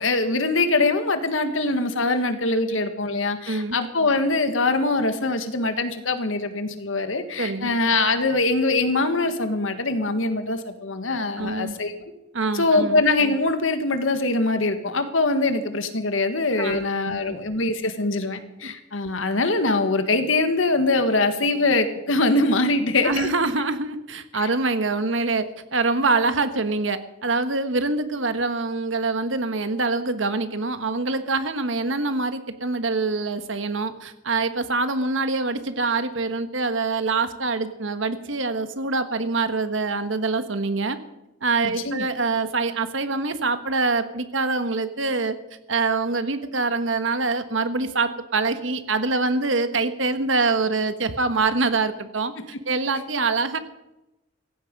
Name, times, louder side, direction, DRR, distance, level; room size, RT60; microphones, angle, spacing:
voice 1, 0.0-11.9 12.5-23.3 24.3-24.5 41.9-42.1 52.4-52.5, left 2 dB, 80° left, 8 dB, 1.8 m, -23 dB
voice 2, 7.4-7.7 11.4-11.8 12.3-13.0 16.6-16.9 17.3-17.4 18.6-18.7 23.0-41.0 41.4-45.4 45.7-52.3 52.7-53.6, right 3 dB, 70° right, 10 dB, 1.4 m, -25 dB
17.0 x 15.0 x 5.4 m, 0.95 s
head